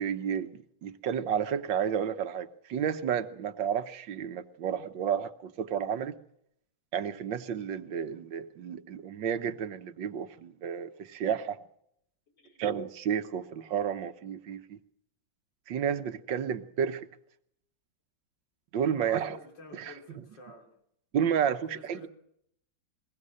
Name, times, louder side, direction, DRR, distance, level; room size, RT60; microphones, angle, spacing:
voice 1, 0.0-6.1 6.9-11.6 12.6-14.8 15.7-17.1 18.7-19.4 19.7-19.9 21.1-22.1, right 8 dB, 85° right, 9 dB, 1.8 m, -31 dB
voice 2, 12.4-12.7 19.0-20.7 21.7-22.1, left 2 dB, 80° left, 2 dB, 4.1 m, -50 dB
22.0 x 22.0 x 6.5 m, 0.72 s
omnidirectional pair, 1.9 m